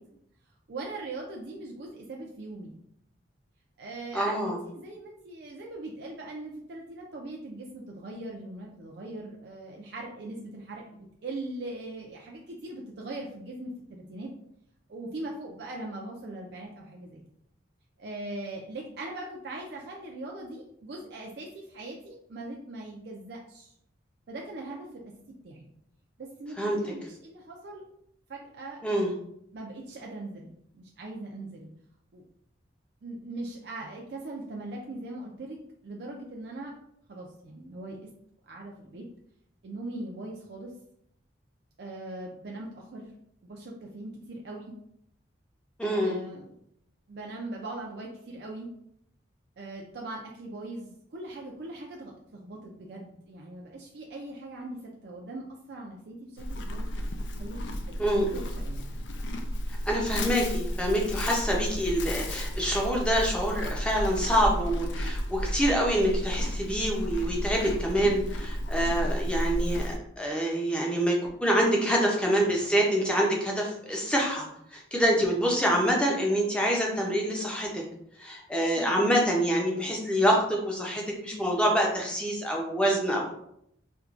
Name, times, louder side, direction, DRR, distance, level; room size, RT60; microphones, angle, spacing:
voice 1, 0.7-2.8 3.8-14.3 14.9-17.2 18.0-23.7 24.3-25.0 25.3-25.7 26.2-27.8 28.3-28.8 29.5-31.7 32.1-32.2 33.0-35.6 35.8-36.7 37.1-38.0 38.5-39.1 39.6-40.7 41.8-43.1 43.4-44.7 45.8-46.5 47.1-48.7 49.6-56.9 57.4-58.1 58.3-58.8 71.6-72.0 76.0-76.1 78.8-79.0, right 2 dB, 55° right, -1 dB, 0.4 m, -40 dB
voice 2, 4.1-4.6 26.6-26.8 28.8-29.1 45.8-46.2 58.0-58.4 59.9-77.8 78.2-83.3, equal, 5° left, -1 dB, 0.5 m, -26 dB
Livestock farm animals working animals, 56.4-70.0, equal, 65° left, 0.4 m, -32 dB
4.4 x 2.2 x 2.4 m, 0.74 s
head